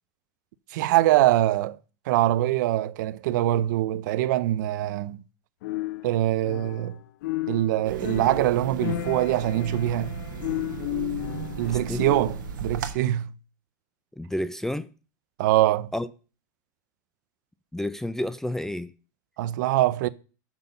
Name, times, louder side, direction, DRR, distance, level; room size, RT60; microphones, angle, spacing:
voice 1, 0.7-1.8 2.1-5.2 6.0-7.0 7.5-10.2 11.6-12.4 12.6-13.3 15.4-15.9 19.4-20.1, right 14 dB, 70° right, 0.5 m, -23 dB
sound 1, 5.6-7.0 7.2-12.5, left 17 dB, 70° left, 0.4 m, -33 dB
sound 2, 7.8-12.9, right 6 dB, 90° right, 1.2 m, -35 dB
voice 2, 11.7-12.1 14.2-14.9 15.9-16.1 17.7-18.9, left 1 dB, 5° left, 0.4 m, -30 dB
6.2 x 5.3 x 6.8 m
supercardioid pair, 120°, 10 cm